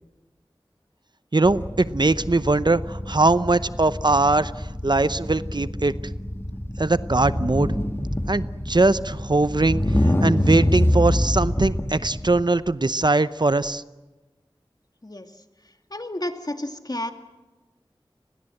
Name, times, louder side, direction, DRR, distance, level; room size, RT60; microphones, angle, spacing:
voice 1, 1.3-5.9 6.8-7.7 8.3-13.8, right 2 dB, 50° right, 14 dB, 0.7 m, -21 dB
sound 1, 1.4-12.4, left 1 dB, 25° left, 2.3 m, -26 dB
voice 2, 15.9-17.1, left 1 dB, 45° left, 6 dB, 2.2 m, -31 dB
29.5 x 20.5 x 7.8 m, 1.2 s
wide cardioid pair, 45°, 9 cm